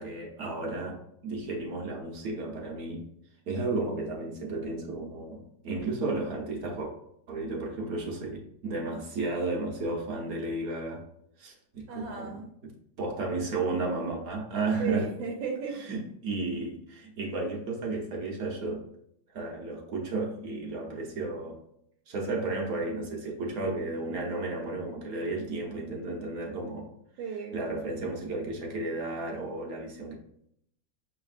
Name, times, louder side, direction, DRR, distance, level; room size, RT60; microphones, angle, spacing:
voice 1, 0.0-3.0 3.5-6.9 7.3-11.0 11.4-12.7 13.0-15.1 15.7-18.8 19.3-21.6 22.1-26.9 27.5-30.1, right 2 dB, 60° right, 0 dB, 1.1 m, -33 dB
voice 2, 11.9-12.5 14.8-15.8 27.2-27.7, right 5 dB, 85° right, 0 dB, 1.5 m, -35 dB
5.6 x 3.3 x 2.4 m, 0.73 s
omnidirectional pair, 2.1 m